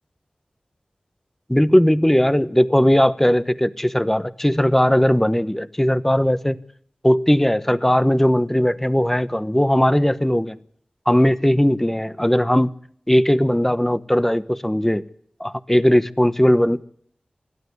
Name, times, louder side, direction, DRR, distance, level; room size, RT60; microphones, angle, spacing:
voice 1, 1.5-6.6 7.0-10.6 11.1-12.7 13.1-15.0 15.4-16.8, equal, 10° left, 14 dB, 1.0 m, -18 dB
27.0 x 12.5 x 9.6 m, 0.64 s
cardioid pair, 45°, 3 cm